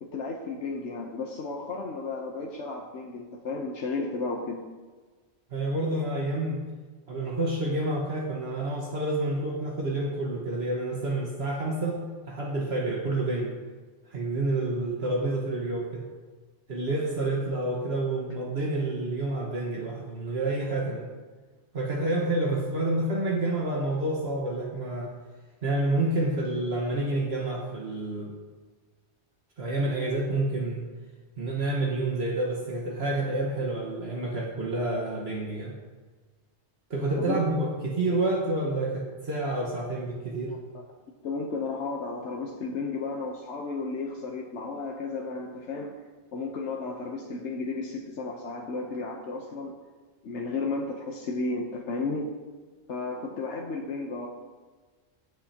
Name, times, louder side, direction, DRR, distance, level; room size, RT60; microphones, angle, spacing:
voice 1, 0.0-4.6 37.2-37.4 40.5-40.6 41.2-45.9 46.3-49.8 50.2-52.3 52.9-54.3, left 3 dB, 90° left, 0 dB, 1.2 m, -33 dB
voice 2, 5.5-6.6 7.1-13.5 14.1-16.1 16.7-21.0 21.7-25.1 25.6-28.3 29.6-30.9 31.4-35.8 36.9-40.5, right 2 dB, 65° right, -3 dB, 1.7 m, -29 dB
20.0 x 6.7 x 2.9 m, 1.4 s
omnidirectional pair, 1.2 m